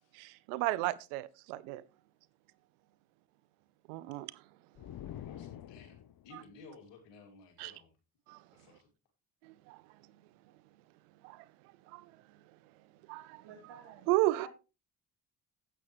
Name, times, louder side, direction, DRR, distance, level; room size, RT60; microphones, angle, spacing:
voice 1, 0.1-1.8 3.9-4.3 7.6-7.7 8.3-8.4 9.4-9.8 11.2-11.4 11.9-12.1 13.1-13.4 14.1-14.5, right 18 dB, 90° right, 0.5 m, -33 dB
sound 1, 4.7-6.4, left 11 dB, 55° left, 0.7 m, -46 dB
voice 2, 5.2-6.0 6.2-7.9 8.5-8.9, left 3 dB, 75° left, 2.5 m, -55 dB
voice 3, 13.4-14.5, right 6 dB, 75° right, 2.5 m, -51 dB
10.0 x 8.4 x 3.0 m
hypercardioid pair, 45°, 43 cm